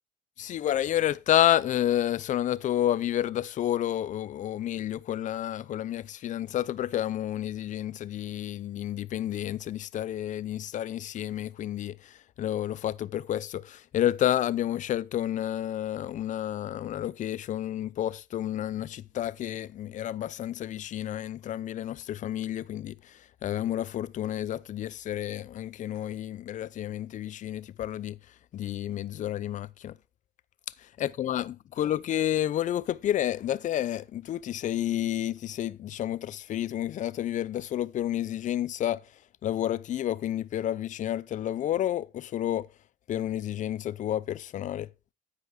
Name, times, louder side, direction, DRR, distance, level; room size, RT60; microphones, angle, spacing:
voice 1, 0.4-28.2 28.5-29.9 31.0-39.0 39.4-42.7 43.1-44.9, left 12 dB, 45° left, 0.5 m, -30 dB
9.6 x 8.4 x 3.7 m
cardioid pair, 110°, 17 cm